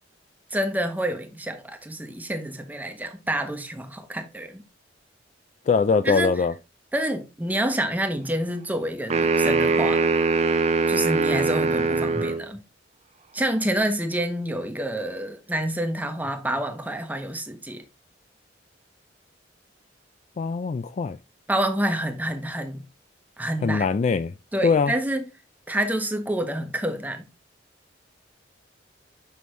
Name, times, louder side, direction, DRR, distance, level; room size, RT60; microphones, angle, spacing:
voice 1, 0.5-4.6 6.0-6.5 6.9-10.2 10.9-12.6 13.3-17.8 21.5-22.8 23.4-23.9 24.5-25.2 25.7-27.3, right 1 dB, 10° right, 0.8 m, -28 dB
voice 2, 5.7-6.5 20.4-21.2 23.6-24.3 24.6-24.9, left 5 dB, 40° left, 0.3 m, -22 dB
sound 1, 9.1-12.4, right 3 dB, 35° right, 0.5 m, -22 dB
6.3 x 5.3 x 3.1 m
head